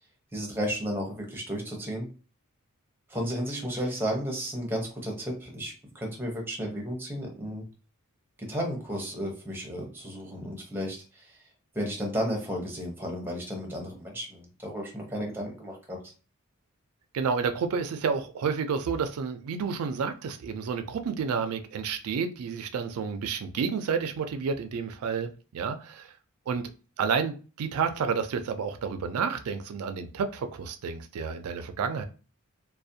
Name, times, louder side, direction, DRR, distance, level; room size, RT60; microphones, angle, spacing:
voice 1, 0.3-2.1 3.1-7.6 8.4-11.2 11.7-16.0, equal, 10° right, 0 dB, 0.7 m, -33 dB
voice 2, 17.1-26.1 26.5-26.7 27.0-32.0, right 6 dB, 75° right, 8 dB, 0.3 m, -30 dB
2.4 x 2.1 x 2.6 m, 0.35 s
head